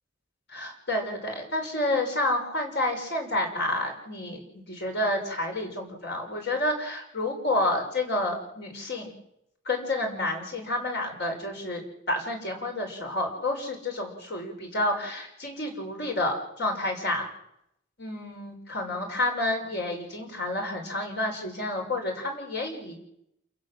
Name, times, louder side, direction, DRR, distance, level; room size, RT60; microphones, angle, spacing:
voice 1, 0.5-9.1 9.6-17.2 18.0-23.0, left 1 dB, 60° left, 2 dB, 6.4 m, -29 dB
29.0 x 16.0 x 7.8 m, 0.79 s
head